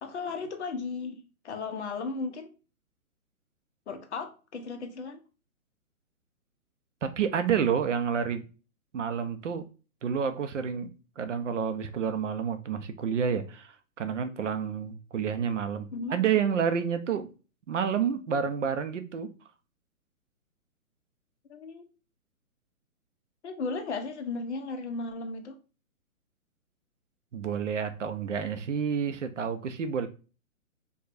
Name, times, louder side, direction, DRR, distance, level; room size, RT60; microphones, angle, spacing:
voice 1, 0.0-2.5 3.9-5.2 15.9-16.2 21.5-21.9 23.4-25.6, left 4 dB, 50° left, 0.7 m, -35 dB
voice 2, 7.0-8.4 8.9-9.6 10.0-17.3 17.7-19.3 27.3-30.1, right 7 dB, 55° right, 0.5 m, -29 dB
4.7 x 2.2 x 2.5 m
hypercardioid pair, 160°, 44 cm